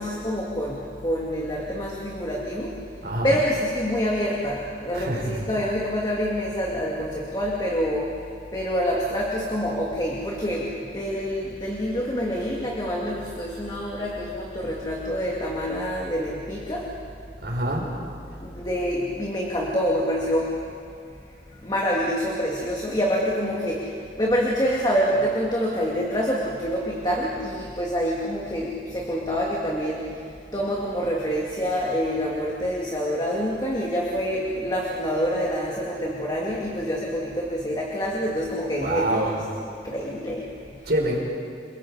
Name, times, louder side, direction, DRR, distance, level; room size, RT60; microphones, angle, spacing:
voice 1, 0.0-2.8 3.2-16.9 18.4-20.6 21.5-39.3 39.7-40.9, equal, 25° left, -3 dB, 2.4 m, -27 dB
voice 2, 3.0-3.4 4.9-5.5 17.4-17.9 38.8-39.4 40.8-41.2, right 1 dB, 70° right, -1 dB, 4.7 m, -26 dB
29.5 x 23.0 x 4.9 m, 2.4 s
head